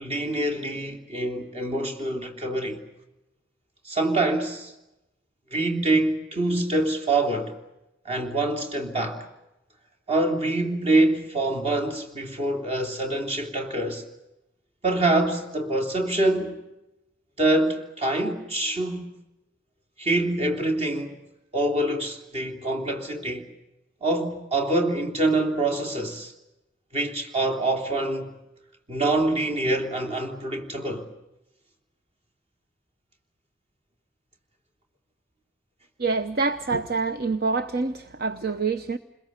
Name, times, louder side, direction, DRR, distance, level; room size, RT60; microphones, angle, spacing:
voice 1, 0.0-2.8 3.8-4.7 5.5-7.5 8.0-9.3 10.1-14.0 14.8-16.6 17.4-19.1 20.0-21.2 21.5-23.4 24.0-26.3 26.9-28.3 28.9-31.1, right 2 dB, 30° right, 3.3 m, -25 dB
voice 2, 36.0-39.0, right 4 dB, 50° right, 0.9 m, -26 dB
29.0 x 21.5 x 8.2 m
head